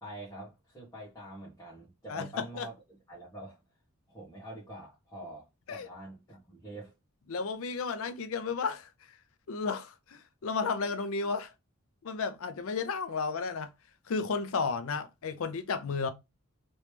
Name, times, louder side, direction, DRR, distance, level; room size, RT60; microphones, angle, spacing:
voice 1, 0.0-3.6 4.1-6.9, right 1 dB, 15° left, 1.2 m, -45 dB
voice 2, 2.1-2.7 5.7-5.9 7.3-8.9 9.5-11.5 12.0-13.7 14.1-16.1, left 4 dB, 75° left, 0.5 m, -33 dB
3.1 x 3.0 x 3.3 m
head